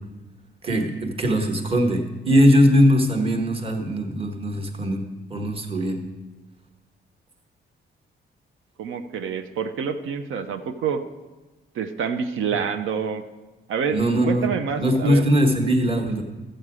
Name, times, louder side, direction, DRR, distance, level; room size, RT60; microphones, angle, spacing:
voice 1, 0.6-6.0 13.9-14.5 14.7-16.2, equal, 30° right, 3 dB, 1.2 m, -20 dB
voice 2, 8.8-11.0 11.7-13.2 13.7-15.3, right 6 dB, 85° right, 7 dB, 0.7 m, -27 dB
14.0 x 7.8 x 4.9 m, 1.2 s
wide cardioid pair, 180°, 20 cm